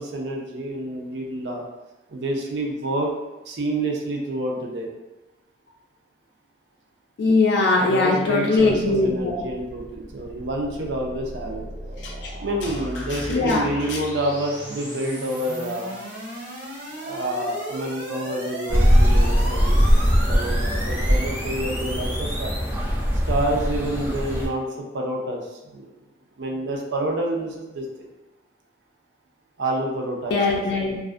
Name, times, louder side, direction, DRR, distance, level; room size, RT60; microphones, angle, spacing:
voice 1, 0.0-1.7 2.1-3.1 3.5-4.9 7.8-11.6 12.4-15.9 16.9-22.5 23.3-25.4 25.7-25.9 26.4-28.1 29.6-30.6, right 1 dB, 75° right, 0 dB, 0.5 m, -28 dB
voice 2, 7.2-9.4 12.0-12.3 13.1-14.0 30.3-31.0, left 3 dB, 70° left, -2 dB, 0.4 m, -21 dB
sound 1, 9.2-22.7, equal, 90° right, 1.2 m, -36 dB
sound 2, 18.7-24.5, equal, 10° right, 0.4 m, -21 dB
2.4 x 2.3 x 2.4 m, 1.0 s
head